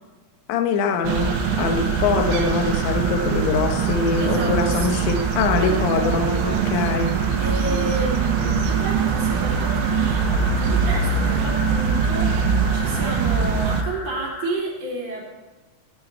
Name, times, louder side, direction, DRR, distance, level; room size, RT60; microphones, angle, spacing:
voice 1, 0.5-7.4, left 5 dB, 75° left, 6 dB, 3.2 m, -23 dB
sound 1, 1.0-14.5, left 3 dB, 60° left, 4.5 m, -35 dB
sound 2, 1.0-13.8, right 6 dB, 75° right, 3.4 m, -22 dB
voice 2, 4.2-5.1 5.6-6.8 7.4-15.2, right 1 dB, 35° right, -5 dB, 4.3 m, -31 dB
16.5 x 9.7 x 4.6 m, 1.2 s
omnidirectional pair, 5.6 m